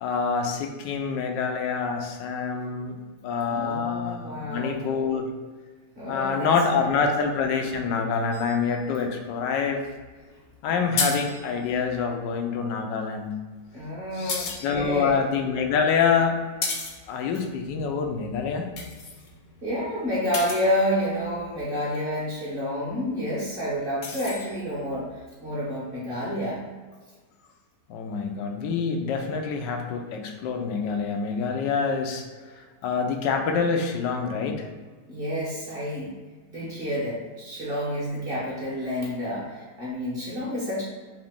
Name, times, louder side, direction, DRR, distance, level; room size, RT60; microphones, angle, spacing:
voice 1, 0.0-3.0 3.2-5.3 6.1-9.8 10.6-13.4 14.1-16.4 17.1-18.6 27.9-32.2 32.8-34.6, left 5 dB, 90° left, 3 dB, 1.3 m, -26 dB
voice 2, 3.5-4.8 5.9-7.1 13.7-15.2 19.6-26.6 35.1-36.2 36.5-40.8, equal, 35° right, -7 dB, 1.1 m, -29 dB
sound 1, 8.3-12.1 13.5-21.6 22.9-25.3, left 4 dB, 60° left, 0.8 m, -37 dB
3.9 x 2.9 x 3.5 m, 1.4 s
omnidirectional pair, 1.9 m